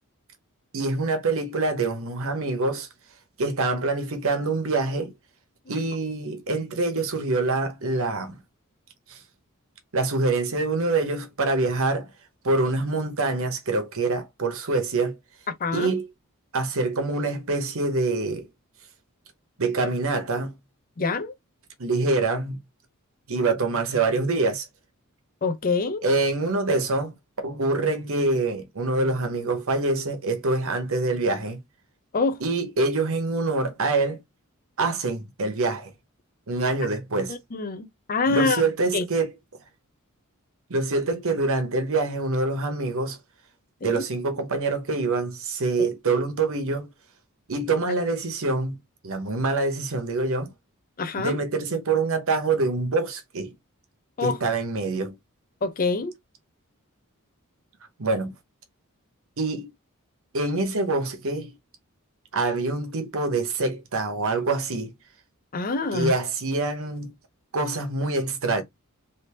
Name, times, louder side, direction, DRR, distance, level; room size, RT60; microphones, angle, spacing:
voice 1, 0.7-2.9 3.4-5.1 5.7-8.4 9.1-9.2 9.9-12.1 12.4-15.2 15.7-16.1 16.5-18.5 19.6-20.6 21.8-22.6 23.3-24.7 26.0-31.6 32.4-34.2 34.8-35.9 36.5-37.3 38.3-39.3 40.7-43.2 43.8-46.9 47.5-48.8 49.0-50.5 51.1-53.5 54.2-55.1 58.0-58.3 59.4-59.7 60.3-61.5 62.3-64.9 65.9-67.1 67.5-68.6, right 3 dB, 65° right, 1.0 m, -25 dB
voice 2, 15.6-15.9 21.0-21.3 25.4-26.0 32.1-32.4 37.3-38.6 38.9-39.0 43.8-44.0 45.8-45.9 51.0-51.4 54.2-54.4 55.6-56.1 65.5-66.1, left 3 dB, 40° left, 0.5 m, -25 dB
3.4 x 2.6 x 2.9 m
head